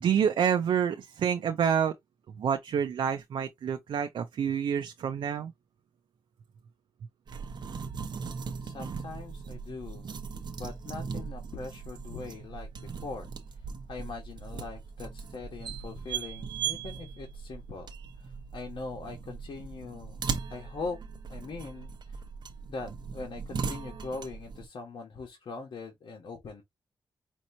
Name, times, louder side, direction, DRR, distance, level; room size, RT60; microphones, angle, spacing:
voice 1, 0.0-1.9 2.4-5.5, right 8 dB, 85° right, 0.5 m, -28 dB
sound 1, 7.3-24.7, right 6 dB, 60° right, 0.8 m, -39 dB
voice 2, 8.6-10.1 10.6-13.6 13.9-17.9 18.2-21.0 21.3-22.2 22.7-26.6, left 4 dB, 70° left, 1.4 m, -41 dB
5.3 x 2.9 x 2.7 m
wide cardioid pair, 105°, 8 cm